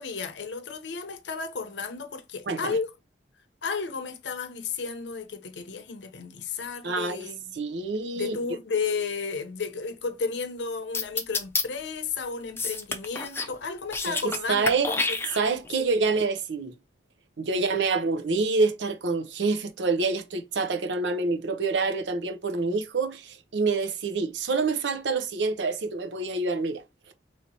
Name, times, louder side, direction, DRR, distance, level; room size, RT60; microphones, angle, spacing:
voice 1, 0.0-2.9 3.6-7.4 8.1-15.0 17.5-17.8, left 5 dB, 90° left, 0.7 m, -33 dB
voice 2, 6.8-8.4 14.1-14.2 14.5-14.9 15.4-16.7 17.4-26.8, right 3 dB, 90° right, 0.6 m, -27 dB
sound 1, 10.9-11.6 12.6-13.5 13.8-14.4 14.7-15.7, left 3 dB, 15° left, 0.5 m, -28 dB
3.2 x 2.9 x 4.0 m
head